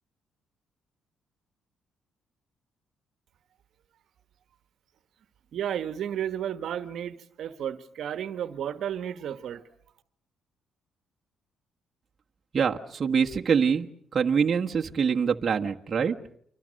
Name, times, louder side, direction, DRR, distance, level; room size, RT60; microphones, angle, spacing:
voice 1, 5.5-9.6, right 9 dB, 70° right, 1.4 m, -33 dB
voice 2, 12.5-13.9 14.1-16.2, right 6 dB, 45° right, 1.4 m, -24 dB
29.5 x 25.0 x 6.5 m
cardioid pair, 90°, 0 cm